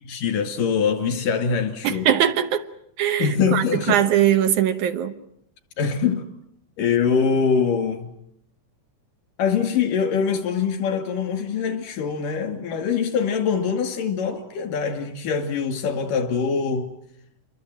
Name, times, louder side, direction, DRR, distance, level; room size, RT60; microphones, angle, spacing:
voice 1, 0.0-2.1 3.2-4.0 5.8-6.3 6.8-8.1 9.4-16.9, left 6 dB, 85° left, 4.1 m, -23 dB
voice 2, 1.8-2.6 3.0-5.2, right 10 dB, 75° right, 2.6 m, -21 dB
28.0 x 22.5 x 7.7 m
omnidirectional pair, 3.7 m